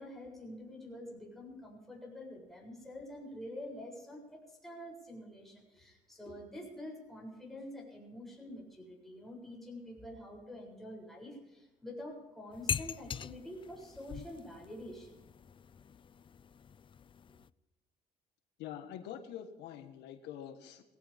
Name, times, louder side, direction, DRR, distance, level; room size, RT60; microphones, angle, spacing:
voice 1, 0.0-15.2, left 1 dB, ahead, -2 dB, 7.6 m, -47 dB
sound 1, 12.5-17.5, left 7 dB, 30° left, 0.4 m, -42 dB
voice 2, 18.6-20.8, left 10 dB, 85° left, 6 dB, 1.6 m, -45 dB
20.5 x 17.0 x 3.7 m, 1.1 s
cardioid pair, 110°, 17 cm